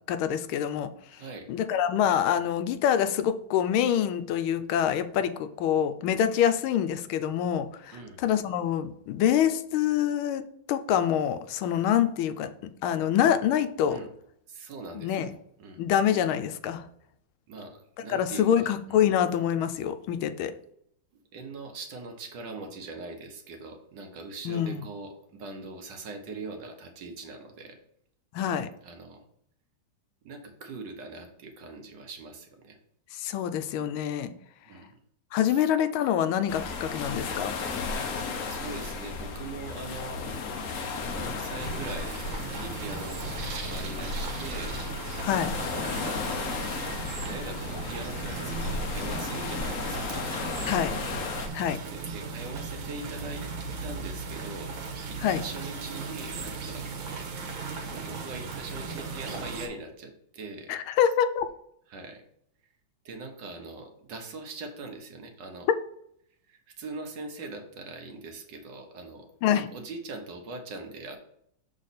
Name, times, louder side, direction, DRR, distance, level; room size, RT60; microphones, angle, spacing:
voice 1, 0.1-1.2 1.5-10.4 10.7-12.5 12.8-14.0 14.9-15.3 15.8-16.8 18.1-20.5 24.4-24.8 28.3-28.7 33.1-34.3 35.3-37.6 45.2-45.6 50.7-50.9 51.5-51.8 55.2-55.4 60.7-61.5 69.4-69.7, left 9 dB, 90° left, 10 dB, 1.4 m, -26 dB
voice 2, 1.1-1.5 7.9-8.2 13.8-14.1 14.5-15.3 15.6-15.8 17.5-19.0 21.1-27.8 28.8-29.2 30.2-32.8 34.6-34.9 35.5-35.6 38.5-40.2 41.0-44.8 45.9-46.4 47.2-50.7 51.9-53.5 53.8-54.7 55.1-57.3 57.9-60.7 61.9-62.2 63.0-65.7 66.5-69.3 69.7-71.2, right 3 dB, 65° right, 4 dB, 1.5 m, -41 dB
Windy Beach Waves, 36.5-51.5, left 4 dB, 60° left, 0.8 m, -34 dB
sound 1, 41.6-59.7, right 4 dB, 80° right, 1.8 m, -37 dB
6.5 x 4.1 x 4.1 m, 0.71 s
omnidirectional pair, 2.2 m